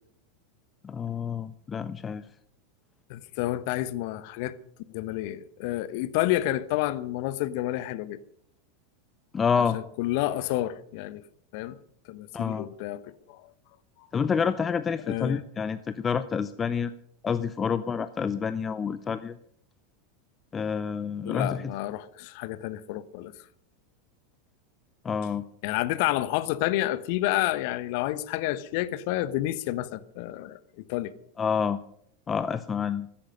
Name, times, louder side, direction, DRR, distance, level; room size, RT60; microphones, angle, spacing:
voice 1, 0.8-2.2 9.3-9.8 12.3-12.7 14.1-16.9 17.2-19.3 20.5-21.6 25.0-25.4 31.4-31.8 32.3-33.1, left 6 dB, 20° left, 0.6 m, -28 dB
voice 2, 3.1-4.6 4.9-8.2 9.7-11.2 11.5-11.8 12.1-13.4 15.1-15.4 21.2-23.3 25.6-31.1, left 15 dB, 50° left, 1.1 m, -29 dB
15.5 x 14.5 x 5.3 m
figure-of-eight pair, 85°, 0 cm